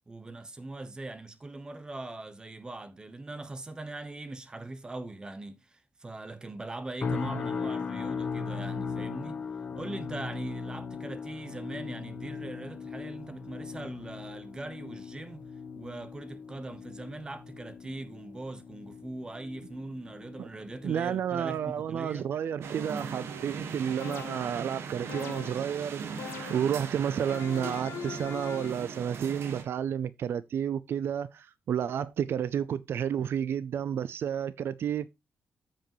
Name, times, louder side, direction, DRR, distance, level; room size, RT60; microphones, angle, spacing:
voice 1, 0.1-9.5 9.7-15.5 15.7-22.3, right 2 dB, 20° right, 1.0 m, -41 dB
sound 1, 7.0-22.2 22.6-23.0 23.4-23.6, left 5 dB, 40° left, 1.0 m, -39 dB
voice 2, 20.8-26.0 26.5-35.1, right 8 dB, 65° right, 0.4 m, -31 dB
sound 2, 22.6-29.6, right 6 dB, 85° right, 1.5 m, -39 dB
sound 3, 24.0-24.6 25.1-25.7 26.2-26.8 27.3-28.9, left 7 dB, 90° left, 1.3 m, -42 dB
14.0 x 5.1 x 3.1 m
wide cardioid pair, 175°, 4 cm